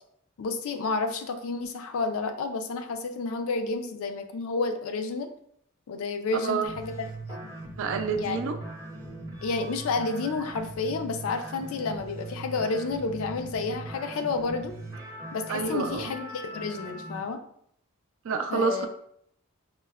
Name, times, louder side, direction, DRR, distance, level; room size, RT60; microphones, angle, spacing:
voice 1, 0.4-5.3 5.9-7.5 8.2-8.4 9.4-14.7 15.3-17.4 18.5-18.9, left 3 dB, 70° left, 7 dB, 0.4 m, -30 dB
sound 1, 6.7-17.2, right 2 dB, 15° right, 0.6 m, -40 dB
voice 2, 7.8-8.6 15.5-16.1 18.2-18.9, right 5 dB, 65° right, 7 dB, 0.4 m, -28 dB
4.3 x 2.0 x 2.2 m, 0.68 s
head